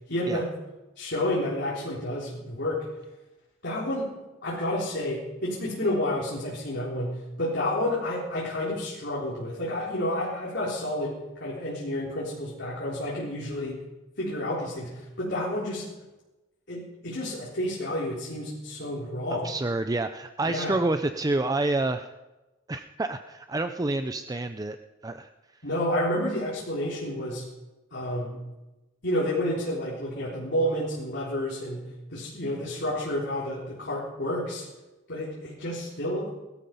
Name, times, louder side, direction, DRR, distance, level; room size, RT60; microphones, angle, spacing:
voice 1, 0.1-0.5 1.0-2.9 3.6-4.1 4.4-13.8 14.2-15.9 16.7-19.6 20.5-20.8 25.6-27.5 27.9-28.4 29.0-34.6 35.1-36.3, left 1 dB, 60° left, -6 dB, 3.9 m, -30 dB
voice 2, 19.3-22.1 22.7-24.8 25.0-25.3, right 2 dB, 20° right, 8 dB, 0.5 m, -28 dB
20.0 x 13.0 x 5.4 m, 1.1 s
head